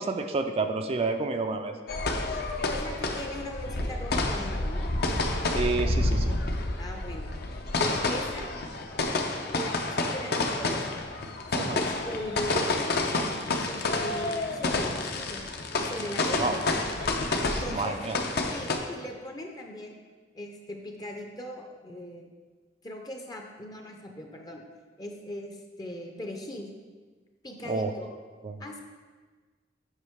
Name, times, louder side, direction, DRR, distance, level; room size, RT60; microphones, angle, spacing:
voice 1, 0.0-1.7 5.5-6.4 11.5-11.8 16.4-16.6 17.5-18.2 27.6-27.9 28.4-28.6, right 3 dB, 35° right, 6 dB, 0.4 m, -29 dB
sound 1, 1.9-18.8, left 2 dB, 60° left, 0.7 m, -29 dB
voice 2, 2.7-4.9 6.8-7.3 7.8-8.5 9.5-10.9 11.6-15.4 15.8-16.6 17.4-18.0 18.5-20.0 20.3-22.3 22.8-24.6 25.0-26.7 27.4-28.1 28.6-28.8, left 1 dB, 20° left, 2 dB, 0.6 m, -39 dB
8.1 x 5.5 x 3.5 m, 1.4 s
head